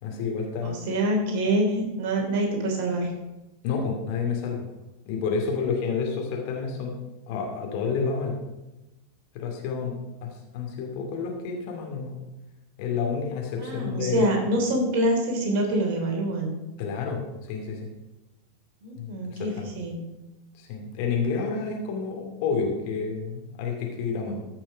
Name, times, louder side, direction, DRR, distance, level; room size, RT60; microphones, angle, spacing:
voice 1, 0.0-0.8 3.6-4.6 5.1-6.9 7.3-8.4 9.3-12.2 12.8-14.3 16.8-17.2 17.5-17.9 19.0-19.7 20.5-24.5, left 5 dB, 45° left, 1 dB, 2.3 m, -29 dB
voice 2, 0.6-3.1 13.6-16.5 18.8-20.0, right 1 dB, 50° right, 2 dB, 3.2 m, -26 dB
14.5 x 6.1 x 5.1 m, 1.0 s
figure-of-eight pair, 90°, 0 cm